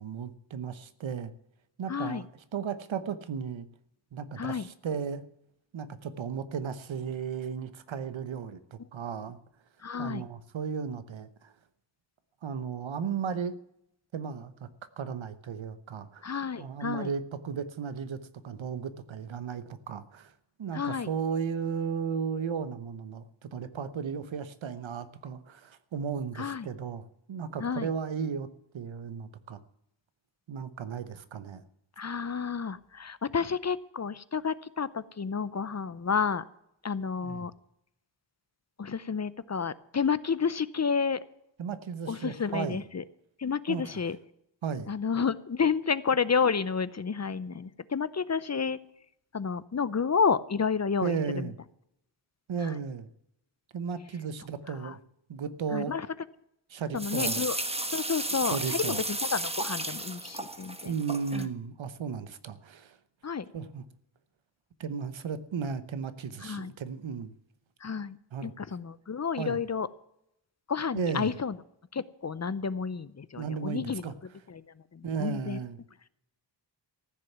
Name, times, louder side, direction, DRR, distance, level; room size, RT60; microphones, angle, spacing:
voice 1, 0.0-1.3 1.8-2.2 2.5-3.7 4.1-5.2 5.7-9.4 10.0-11.5 12.4-13.6 14.1-14.7 15.0-16.2 16.6-18.2 18.4-20.3 20.6-28.5 28.7-29.6 30.5-31.6 37.2-37.5 41.6-42.8 43.7-43.8 44.6-44.9 51.0-51.5 52.5-53.1 53.7-55.0 55.3-55.9 56.7-57.4 58.5-59.0 60.8-63.0 63.5-63.8 64.8-67.3 68.3-68.5 69.4-69.6 70.9-71.3 73.4-74.1 75.0-75.8, right 6 dB, 90° right, 13 dB, 1.0 m, -35 dB
voice 2, 1.9-2.2 4.4-4.7 9.8-10.3 16.2-17.1 20.7-21.1 26.4-26.7 27.6-27.9 32.0-36.4 36.8-37.5 38.8-41.2 42.1-43.0 43.4-44.2 44.9-48.8 49.3-51.5 52.6-52.8 54.7-55.0 55.7-56.1 56.9-57.6 57.9-60.9 61.3-61.5 63.2-63.5 66.4-66.7 67.8-68.2 68.4-69.9 70.7-71.6 71.9-74.1 74.5-74.6 74.9-75.6, left 6 dB, 35° left, 17 dB, 0.7 m, -30 dB
sound 1, 57.0-61.4, right 2 dB, 15° right, 1.1 m, -33 dB
14.5 x 6.7 x 9.3 m, 0.79 s
wide cardioid pair, 90°, 45 cm